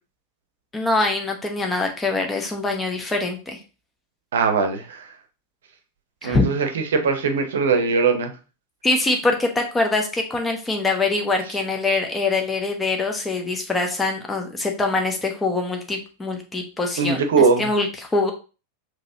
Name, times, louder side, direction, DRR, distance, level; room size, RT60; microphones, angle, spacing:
voice 1, 0.7-3.6 6.2-6.5 8.8-18.3, left 3 dB, 10° left, 1.0 m, -24 dB
voice 2, 4.3-5.1 6.2-8.3 17.0-17.7, right 5 dB, 60° right, 0.8 m, -20 dB
5.2 x 3.1 x 2.8 m
figure-of-eight pair, 90°, 0 cm